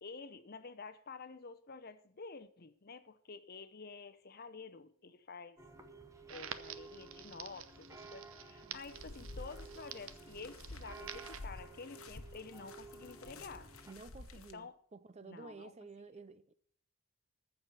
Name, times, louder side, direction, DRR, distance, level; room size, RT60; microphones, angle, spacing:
voice 1, 0.0-5.6 6.3-13.7 14.3-14.8 15.2-15.7, left 4 dB, 45° left, 0.7 m, -50 dB
sound 1, 5.6-13.9, right 3 dB, 15° right, 1.0 m, -54 dB
Crackle, 6.3-11.4, right 9 dB, 65° right, 0.8 m, -50 dB
sound 2, 8.7-14.5, left 2 dB, 65° left, 1.1 m, -51 dB
voice 2, 13.9-16.5, right 3 dB, 30° right, 0.5 m, -52 dB
14.5 x 5.0 x 9.1 m
head